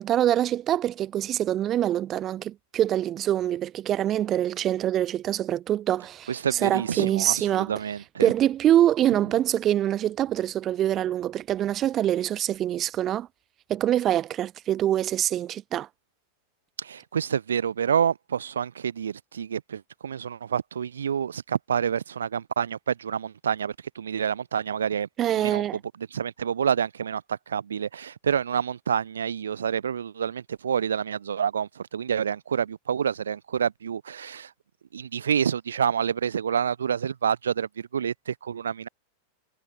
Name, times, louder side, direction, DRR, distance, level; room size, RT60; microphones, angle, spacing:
voice 1, 0.0-7.7 8.2-13.3 13.7-15.9 25.2-25.8, right 11 dB, 30° right, 7.1 m, -24 dB
voice 2, 6.3-8.3 16.8-25.1 25.4-34.5 34.9-38.9, right 8 dB, 70° right, 5.4 m, -28 dB
figure-of-eight pair, 90°, 0 cm